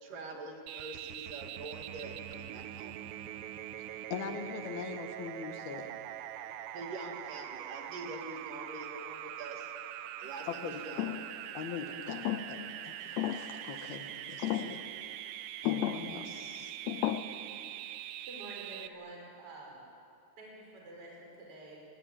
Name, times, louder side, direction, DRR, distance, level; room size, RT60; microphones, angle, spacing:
voice 1, 0.0-3.0 6.7-9.7 10.2-11.1, right 2 dB, 55° right, 2 dB, 3.6 m, -45 dB
sound 1, 0.7-18.9, right 12 dB, 85° right, 3.1 m, -43 dB
voice 2, 3.8-5.9 10.5-10.8 11.5-14.8 15.6-16.8, left 6 dB, 65° left, 5 dB, 3.6 m, -42 dB
sound 2, 11.0-11.3 12.1-12.7 13.2-13.5 14.4-14.8 15.6-16.1 16.9-17.2, left 12 dB, 85° left, 3.0 m, -33 dB
voice 3, 18.3-19.9 20.4-21.8, right 2 dB, 35° right, -2 dB, 5.8 m, -48 dB
27.5 x 21.5 x 9.1 m, 2.5 s
omnidirectional pair, 4.9 m